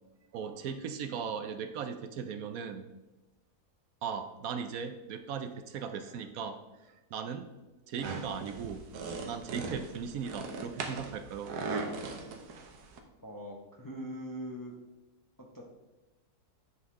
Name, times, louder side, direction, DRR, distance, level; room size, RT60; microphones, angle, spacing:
voice 1, 0.3-2.9 4.0-6.6 6.8-7.5 7.9-8.8 9.2-11.5, right 6 dB, 70° right, 8 dB, 1.0 m, -38 dB
sound 1, 8.0-13.0, right 4 dB, 90° right, 1.4 m, -39 dB
voice 2, 13.2-14.8 15.4-15.6, equal, 20° left, -1 dB, 0.6 m, -42 dB
7.8 x 5.6 x 3.6 m, 1.1 s
omnidirectional pair, 1.6 m